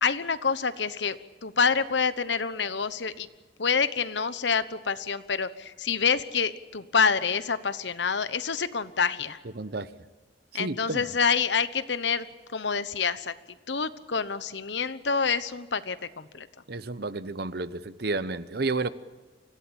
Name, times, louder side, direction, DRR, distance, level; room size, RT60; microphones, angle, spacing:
voice 1, 0.0-3.3 3.6-9.4 10.5-12.3 12.5-13.3 13.7-16.5, left 5 dB, 75° left, 1.1 m, -27 dB
voice 2, 9.6-9.9 10.5-11.1 16.7-18.9, right 3 dB, 60° right, 0.9 m, -31 dB
25.5 x 16.5 x 8.8 m
head